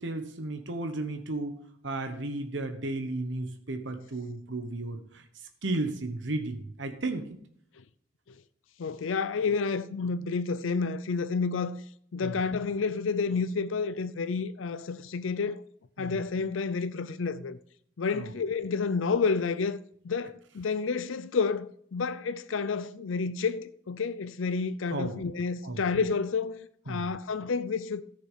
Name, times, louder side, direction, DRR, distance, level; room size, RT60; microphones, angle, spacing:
voice 1, 0.0-1.6 1.8-5.2 5.6-7.3 12.2-12.4 16.0-16.2 18.1-18.3 24.9-25.1 25.6-25.8 26.9-27.0, right 2 dB, 70° right, 1.2 m, -34 dB
voice 2, 8.8-11.8 12.1-15.6 16.0-17.6 18.0-19.8 20.0-28.0, left 4 dB, 90° left, 0.5 m, -30 dB
13.5 x 6.7 x 5.7 m
head